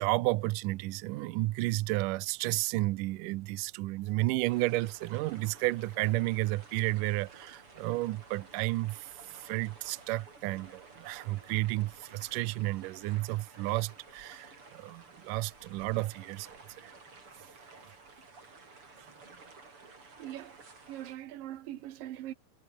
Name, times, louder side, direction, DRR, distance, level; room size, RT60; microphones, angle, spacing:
voice 1, 0.0-16.9, right 20 dB, 85° right, 1.8 m, -32 dB
sound 1, 4.5-21.2, right 4 dB, 35° right, 5.4 m, -53 dB
voice 2, 20.2-20.6 20.9-22.3, right 13 dB, 65° right, 2.6 m, -41 dB
omnidirectional pair, 4.6 m